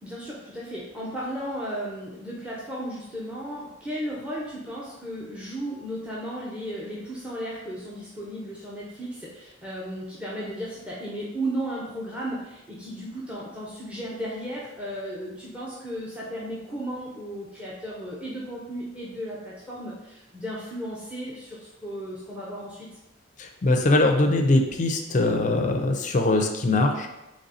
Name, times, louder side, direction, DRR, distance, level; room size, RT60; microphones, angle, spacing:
voice 1, 0.0-22.9, right 1 dB, 5° right, -6 dB, 0.6 m, -35 dB
voice 2, 23.4-27.1, left 2 dB, 35° left, 4 dB, 0.4 m, -22 dB
4.0 x 3.2 x 4.1 m, 0.96 s
head